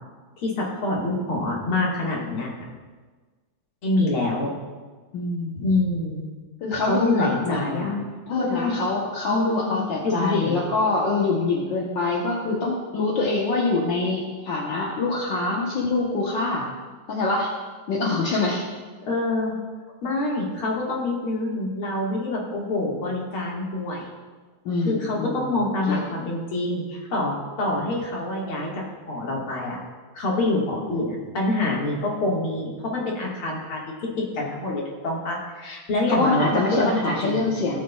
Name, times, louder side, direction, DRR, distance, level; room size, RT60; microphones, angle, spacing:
voice 1, 0.4-2.5 3.8-4.5 5.6-6.3 6.8-7.9 8.3-8.8 9.3-10.6 19.0-19.6 20.0-24.1 24.9-29.8 30.1-37.4, left 2 dB, 85° left, -3 dB, 2.6 m, -26 dB
voice 2, 5.1-5.6 6.6-16.7 17.1-17.5 17.9-18.6 24.7-25.6 25.9-26.0 36.1-37.8, left 3 dB, 65° left, -3 dB, 1.7 m, -25 dB
18.0 x 6.3 x 2.3 m, 1.4 s
omnidirectional pair, 2.3 m